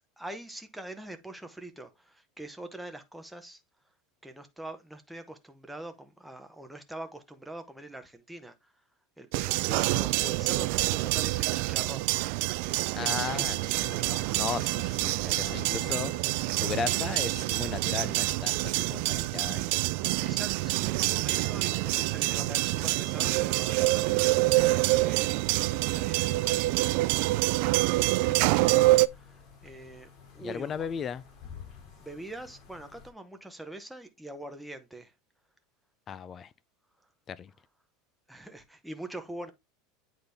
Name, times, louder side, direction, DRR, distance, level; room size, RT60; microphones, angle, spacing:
voice 1, 0.2-3.6 4.2-8.7 9.2-12.1 12.7-14.4 15.2-16.0 20.2-24.3 24.7-26.7 27.9-30.9 32.0-35.1 38.3-39.5, right 1 dB, ahead, 0.8 m, -44 dB
sound 1, 9.3-29.1, right 21 dB, 60° right, 0.3 m, -26 dB
voice 2, 12.9-13.6 13.8-16.1 16.5-19.7 30.4-31.2 36.1-36.5 37.3-37.5, left 7 dB, 25° left, 0.3 m, -36 dB
sound 2, 13.2-33.1, left 5 dB, 45° left, 2.4 m, -51 dB
8.7 x 4.0 x 3.4 m
supercardioid pair, 150°, 0 cm